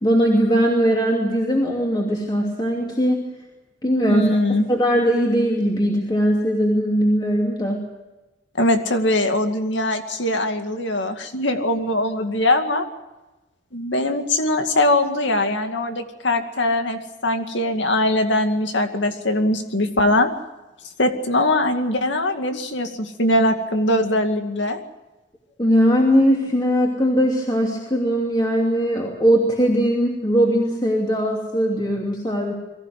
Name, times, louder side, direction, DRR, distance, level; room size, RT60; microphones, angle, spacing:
voice 1, 0.0-3.2 3.8-7.8 25.6-32.5, equal, 25° left, -1 dB, 2.8 m, -20 dB
voice 2, 4.1-4.7 8.5-12.9 13.7-20.3 21.0-24.8, left 1 dB, 75° left, 6 dB, 2.2 m, -21 dB
23.0 x 15.0 x 9.4 m, 1.1 s
head